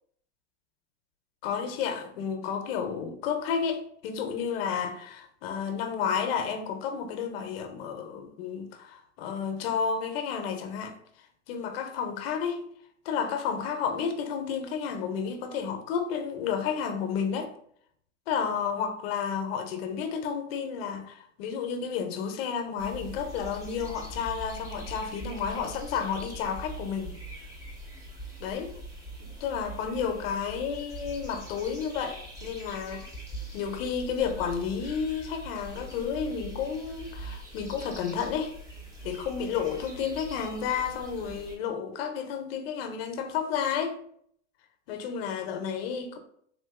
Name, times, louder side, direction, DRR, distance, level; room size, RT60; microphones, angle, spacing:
voice 1, 1.4-11.0 11.5-12.7 13.0-17.5 18.3-27.1 28.4-28.8 29.2-33.1 33.5-38.5 39.0-44.0 44.9-46.2, left 7 dB, 55° left, 0.6 m, -31 dB
sound 1, 22.8-41.6, right 1 dB, 10° right, 0.6 m, -42 dB
3.5 x 2.5 x 2.4 m
hypercardioid pair, 130°, 37 cm